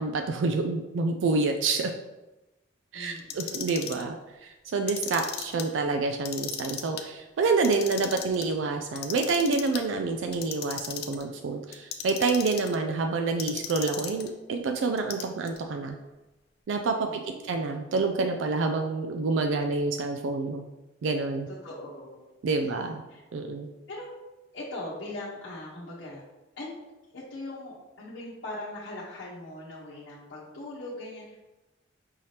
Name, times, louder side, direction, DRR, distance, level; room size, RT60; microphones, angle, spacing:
voice 1, 0.0-1.9 2.9-4.2 4.4-16.0 16.7-17.1 17.5-20.7 21.0-21.5 22.4-23.0 23.3-23.7, right 3 dB, 75° right, 4 dB, 0.4 m, -28 dB
voice 2, 2.9-3.7 17.0-17.6 21.5-22.2 22.6-23.2 23.9-24.1 24.5-26.2 26.6-26.8 27.1-31.4, left 1 dB, 90° left, -9 dB, 1.0 m, -40 dB
Clock, 3.2-4.0 4.7-5.6 6.1-7.0 7.5-8.4 9.0-9.8 10.3-11.2 11.7-12.8 13.4-14.3 15.0-15.6, left 9 dB, 55° left, 0.4 m, -36 dB
5.5 x 2.8 x 3.2 m, 1.0 s
head